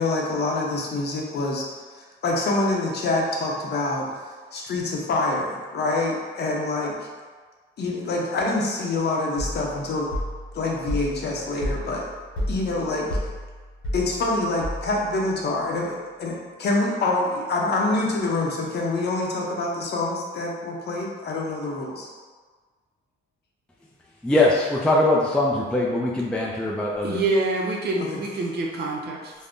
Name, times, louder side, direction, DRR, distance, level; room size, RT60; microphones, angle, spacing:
voice 1, 0.0-1.7 2.0-4.2 4.5-6.9 7.8-10.1 10.5-12.1 12.5-13.1 13.9-22.1 28.0-28.2, left 2 dB, 55° left, -1 dB, 0.6 m, -26 dB
sound 1, 9.4-15.2, equal, 90° left, 0.9 m, -32 dB
voice 2, 24.2-27.2, left 2 dB, 5° left, -3 dB, 0.3 m, -21 dB
voice 3, 27.0-29.3, right 2 dB, 55° right, -1 dB, 0.5 m, -26 dB
2.5 x 2.1 x 3.5 m, 1.5 s
cardioid pair, 90°, 20 cm